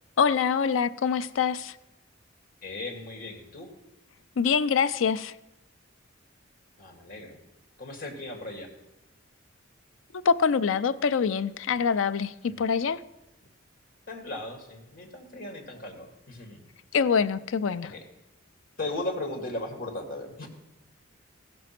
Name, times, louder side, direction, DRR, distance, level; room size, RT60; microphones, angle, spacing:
voice 1, 0.2-1.7 4.4-5.3 10.2-13.0 16.9-17.9, left 6 dB, 80° left, 0.5 m, -25 dB
voice 2, 2.6-3.7 6.8-7.4 7.8-8.7 12.4-12.6 14.1-16.6 17.8-18.0 18.8-20.5, left 2 dB, 50° left, 1.9 m, -37 dB
15.0 x 6.1 x 5.8 m
head